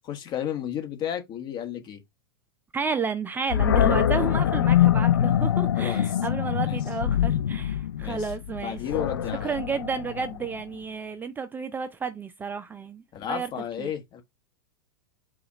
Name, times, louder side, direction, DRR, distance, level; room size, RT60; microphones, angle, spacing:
voice 1, 0.0-2.0 5.7-6.2 6.6-6.8 8.0-8.3 8.6-9.6 13.1-14.2, left 9 dB, 40° left, 1.3 m, -33 dB
voice 2, 2.7-8.8 9.4-13.0 13.3-13.5 13.8-13.9, right 5 dB, 15° right, 0.5 m, -31 dB
Animal, 3.5-10.6, left 10 dB, 80° left, 0.4 m, -24 dB
4.8 x 2.4 x 4.0 m
hypercardioid pair, 100°, 12 cm